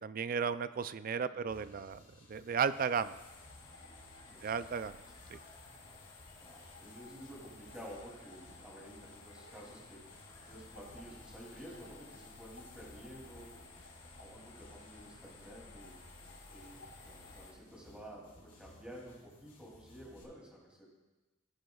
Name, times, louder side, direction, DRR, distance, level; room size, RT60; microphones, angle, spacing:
voice 1, 0.0-2.0 2.3-3.2 4.4-5.0 5.3-5.4, right 6 dB, 45° right, 14 dB, 0.3 m, -34 dB
sound 1, 1.5-20.2, left 1 dB, 40° left, 2.6 m, -60 dB
sound 2, 2.9-17.5, left 3 dB, 85° left, 3.4 m, -55 dB
voice 2, 6.4-10.1 10.5-13.7 14.2-16.0 16.5-20.9, equal, 5° right, -4 dB, 2.7 m, -52 dB
16.5 x 9.2 x 2.3 m, 1.1 s
head